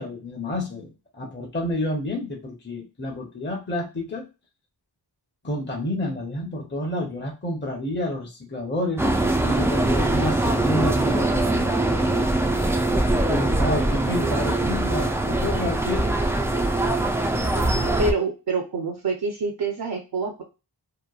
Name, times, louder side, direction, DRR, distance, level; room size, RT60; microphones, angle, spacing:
voice 1, 0.0-4.3 5.4-9.1 9.4-12.3 13.3-16.2, left 1 dB, 25° left, 0 dB, 0.8 m, -29 dB
sound 1, 9.0-18.1, right 2 dB, 5° right, 0.3 m, -22 dB
voice 2, 17.6-20.4, right 3 dB, 55° right, 2 dB, 0.6 m, -27 dB
2.9 x 2.1 x 2.3 m, 0.29 s
cardioid pair, 45°, 44 cm